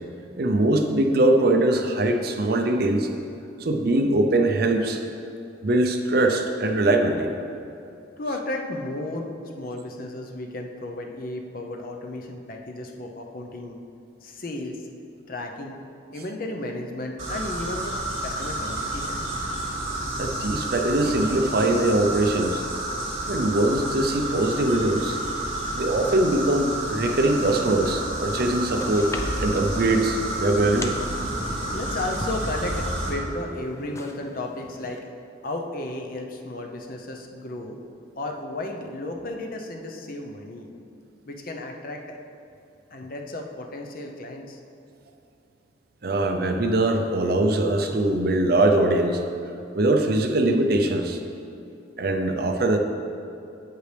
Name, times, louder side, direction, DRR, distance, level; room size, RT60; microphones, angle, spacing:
voice 1, 0.4-3.1 3.6-5.0 5.6-7.3 20.2-22.6 23.3-25.2 25.7-29.1 29.4-30.9 46.0-49.2 49.7-51.2 52.0-52.8, right 2 dB, 55° right, 5 dB, 0.6 m, -22 dB
voice 2, 8.2-13.8 14.2-14.9 15.3-15.8 16.1-19.2 31.7-35.1 35.4-37.8 38.2-40.7 41.3-42.2 42.9-44.6, left 2 dB, 50° left, 2 dB, 0.7 m, -34 dB
sound 1, 17.2-33.1, right 1 dB, 75° right, 2.0 m, -30 dB
sound 2, 27.8-35.0, left 2 dB, 15° left, 0.3 m, -41 dB
8.1 x 7.7 x 3.4 m, 2.6 s
head